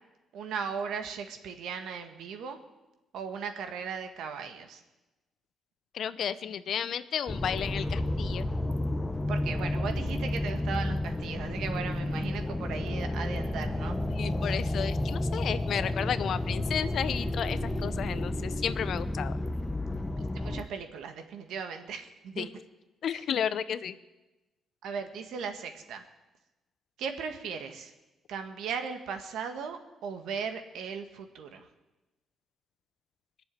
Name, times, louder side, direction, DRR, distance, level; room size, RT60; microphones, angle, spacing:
voice 1, 0.3-2.6 3.1-4.8 9.3-14.0 20.2-22.5 23.1-23.2 24.8-26.0 27.0-27.9 28.3-31.7, right 6 dB, 80° right, 6 dB, 1.6 m, -37 dB
voice 2, 5.9-8.5 14.1-19.3 22.4-22.5 23.0-24.0, left 8 dB, 65° left, 14 dB, 0.7 m, -33 dB
sound 1, 7.3-20.6, left 1 dB, 15° left, 1.0 m, -31 dB
21.0 x 7.0 x 9.6 m, 1.1 s
cardioid pair, 90°, 0 cm